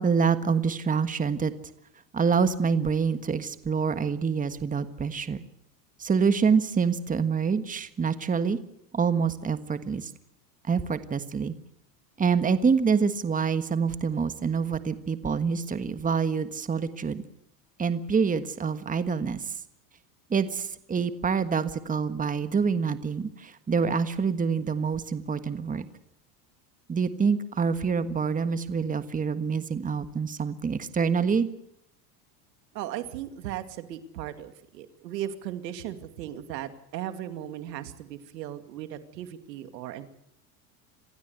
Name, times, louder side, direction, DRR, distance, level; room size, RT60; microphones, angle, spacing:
voice 1, 0.0-1.5 2.1-5.4 6.0-8.6 8.9-10.1 10.7-11.5 12.2-17.2 17.8-19.6 20.3-25.8 26.9-31.5, right 5 dB, 15° right, 11 dB, 1.5 m, -26 dB
voice 2, 32.7-40.1, right 11 dB, 90° right, 10 dB, 2.5 m, -37 dB
27.0 x 16.0 x 8.2 m, 0.76 s
supercardioid pair, 120°, 48 cm